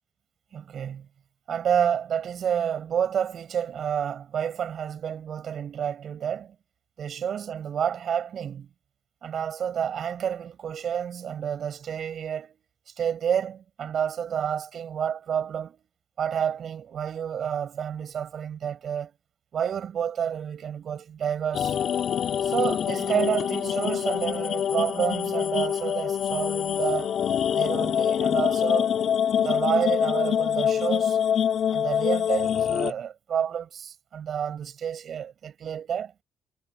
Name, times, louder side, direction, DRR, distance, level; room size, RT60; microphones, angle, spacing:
voice 1, 0.5-1.1 1.5-6.6 7.0-8.7 9.2-12.6 13.0-15.9 16.2-19.1 19.5-21.8 22.4-27.2 27.5-28.9 29.4-31.2 31.7-36.1, right 8 dB, 60° right, 7.6 m, -29 dB
sound 1, 21.5-32.9, left 9 dB, 65° left, 6.4 m, -25 dB
cardioid pair, 90°, 0 cm